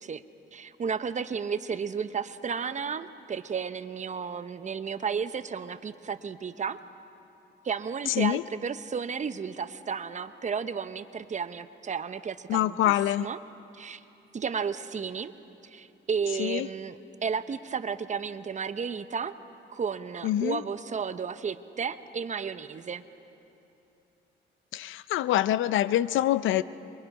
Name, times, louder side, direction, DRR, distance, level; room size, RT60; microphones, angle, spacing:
voice 1, 0.5-6.8 7.6-12.9 13.2-13.4 13.7-14.0 14.3-15.3 15.6-19.3 19.7-23.0, right 6 dB, 40° right, 12 dB, 0.9 m, -33 dB
voice 2, 12.5-13.3 16.4-16.7 20.2-20.6 24.7-26.6, left 13 dB, 80° left, 16 dB, 0.5 m, -25 dB
27.5 x 23.5 x 5.5 m, 2.9 s
cardioid pair, 90°, 20 cm